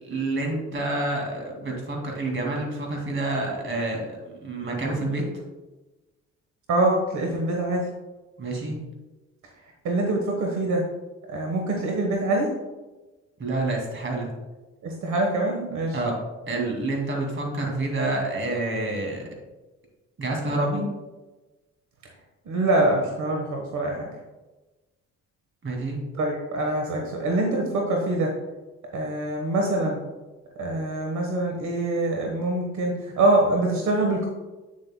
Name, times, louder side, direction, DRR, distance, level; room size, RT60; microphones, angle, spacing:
voice 1, 0.0-5.2 8.4-8.8 13.4-14.3 15.9-16.2 16.5-19.2 20.2-20.8 25.6-26.0, right 2 dB, 40° right, 1 dB, 2.4 m, -28 dB
voice 2, 6.7-7.9 9.8-10.8 11.3-12.5 14.8-16.0 22.4-24.1 26.1-28.3 28.9-30.0 30.6-34.3, right 2 dB, 75° right, 1 dB, 1.4 m, -24 dB
8.9 x 7.4 x 2.3 m, 1.1 s
cardioid pair, 90°, 30 cm